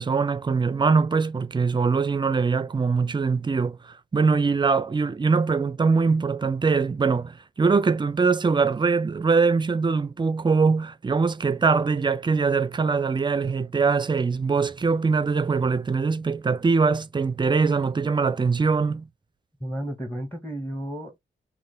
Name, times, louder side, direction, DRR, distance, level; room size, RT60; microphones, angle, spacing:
voice 1, 0.0-19.0, right 4 dB, 20° right, 0.4 m, -22 dB
voice 2, 19.6-21.2, right 1 dB, 10° left, 0.9 m, -32 dB
3.2 x 2.3 x 3.0 m
cardioid pair, 65°, 21 cm